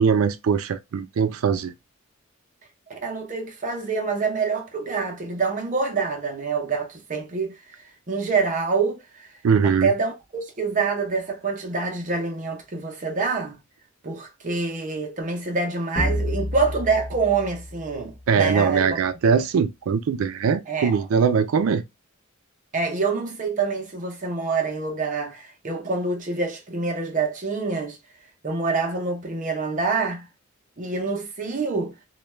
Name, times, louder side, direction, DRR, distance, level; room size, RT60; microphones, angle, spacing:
voice 1, 0.0-1.7 9.4-9.9 18.3-21.8, right 6 dB, 85° right, 0.4 m, -21 dB
voice 2, 2.9-9.3 9.6-13.6 14.0-19.0 20.7-21.0 22.7-28.0 28.4-30.3 30.8-31.9, right 4 dB, 40° right, 0.6 m, -26 dB
sound 1, 16.0-18.6, equal, 30° left, 0.7 m, -30 dB
2.2 x 2.2 x 3.1 m
head